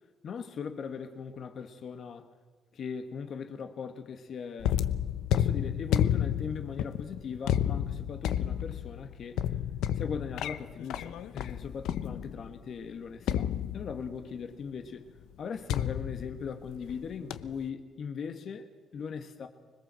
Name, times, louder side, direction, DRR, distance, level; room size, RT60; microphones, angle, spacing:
voice 1, 0.2-2.3 2.7-4.8 5.3-9.4 9.9-15.1 15.4-19.5, left 6 dB, 60° left, 7 dB, 1.7 m, -39 dB
sound 1, 4.6-12.5 13.3-14.3 15.7-17.0 17.3-17.6, left 10 dB, 90° left, 0.8 m, -31 dB
25.5 x 21.0 x 7.7 m, 1.5 s
cardioid pair, 90°, 0 cm